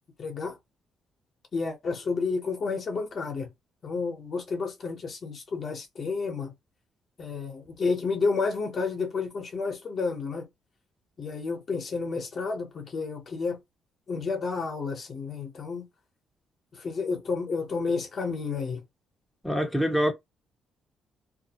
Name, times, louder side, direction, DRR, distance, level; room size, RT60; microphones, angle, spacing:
voice 1, 0.2-0.6 1.5-3.5 3.8-6.5 7.2-10.5 11.2-13.6 14.1-15.9 16.7-18.8, left 4 dB, 50° left, 0.9 m, -31 dB
voice 2, 19.4-20.1, equal, 5° left, 0.8 m, -25 dB
2.5 x 2.1 x 2.8 m
cardioid pair, 90°, 0 cm